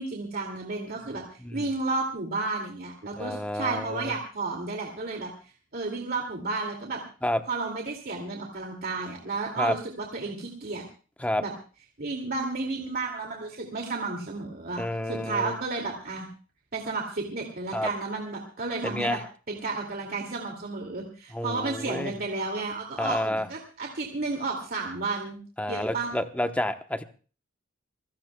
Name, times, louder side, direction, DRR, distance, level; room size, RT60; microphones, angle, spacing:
voice 1, 0.0-1.2 1.5-7.0 7.5-10.8 11.4-11.5 12.0-16.3 16.7-19.2 19.5-25.4 25.7-26.1, right 3 dB, 50° right, 1 dB, 2.3 m, -32 dB
voice 2, 3.2-4.1 7.2-7.4 9.6-9.7 11.2-11.4 14.8-15.5 17.7-17.9 18.8-19.2 21.3-22.1 23.0-23.5 25.6-27.0, left 1 dB, 5° left, 8 dB, 0.9 m, -29 dB
27.5 x 16.0 x 2.3 m, 0.38 s
head